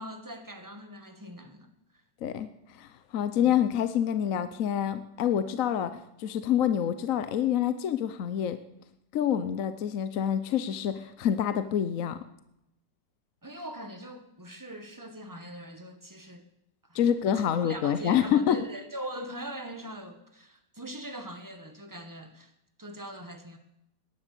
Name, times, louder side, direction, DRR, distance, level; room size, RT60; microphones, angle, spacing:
voice 1, 0.0-1.7 3.4-3.6 13.4-16.4 16.8-17.0 17.3-22.5 22.8-23.6, right 1 dB, 10° right, 1.4 m, -41 dB
voice 2, 2.7-8.6 9.1-12.2 16.9-18.6, left 9 dB, 60° left, 0.9 m, -27 dB
18.5 x 11.0 x 6.8 m
omnidirectional pair, 2.1 m